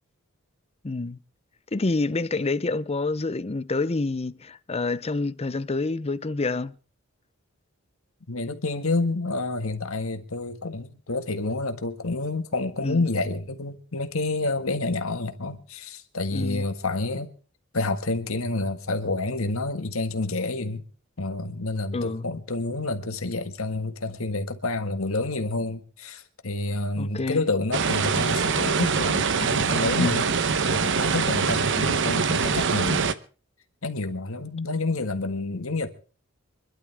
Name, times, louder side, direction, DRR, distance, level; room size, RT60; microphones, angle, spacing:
voice 1, 0.8-1.2 1.7-6.7 12.8-13.0 16.3-16.7 21.9-22.3 27.0-27.4 30.0-30.2, left 3 dB, 30° left, 0.6 m, -27 dB
voice 2, 8.3-17.3 17.7-20.9 21.2-33.2 33.8-35.9, left 2 dB, 75° left, 1.7 m, -29 dB
sound 1, 27.7-33.1, right 5 dB, 60° right, 0.9 m, -24 dB
25.5 x 12.0 x 3.5 m
head